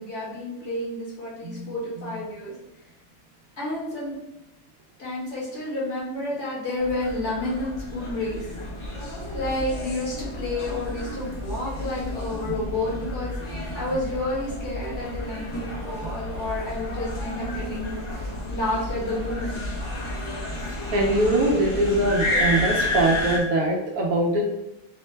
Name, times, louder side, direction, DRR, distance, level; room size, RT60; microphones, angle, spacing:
voice 1, 0.0-2.5 3.6-4.1 5.0-8.4 9.3-18.2 18.5-19.6, left 2 dB, 55° left, -7 dB, 1.7 m, -30 dB
sound 1, 6.8-23.4, left 1 dB, 40° left, 0.4 m, -31 dB
voice 2, 20.6-24.5, right 1 dB, 80° right, -1 dB, 1.1 m, -23 dB
4.7 x 2.1 x 3.1 m, 0.91 s
omnidirectional pair, 1.5 m